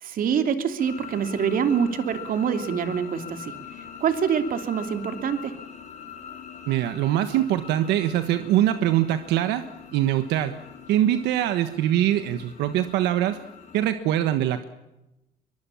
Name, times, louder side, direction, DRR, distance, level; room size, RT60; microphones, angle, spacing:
voice 1, 0.0-3.6 4.0-5.6, right 7 dB, 55° right, 8 dB, 2.9 m, -25 dB
sound 1, 0.8-13.8, left 7 dB, 45° left, 4.8 m, -43 dB
voice 2, 6.7-9.6 9.9-10.5 10.9-13.4 13.7-14.6, right 12 dB, 85° right, 9 dB, 1.4 m, -23 dB
23.0 x 23.0 x 7.2 m, 0.93 s
cardioid pair, 110°, 17 cm